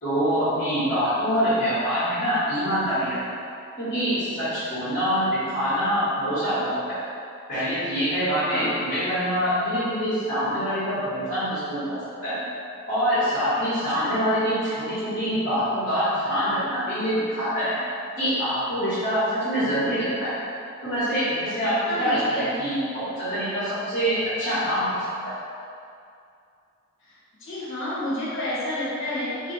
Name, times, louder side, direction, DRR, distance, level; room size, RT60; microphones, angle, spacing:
voice 1, 0.0-3.2 3.8-7.0 7.5-12.4 12.9-17.8 18.2-20.3 20.8-25.4, equal, 45° left, -16 dB, 1.4 m, -25 dB
voice 2, 21.9-22.5 27.4-29.5, left 1 dB, 65° left, -9 dB, 1.2 m, -30 dB
2.9 x 2.5 x 4.0 m, 2.5 s
head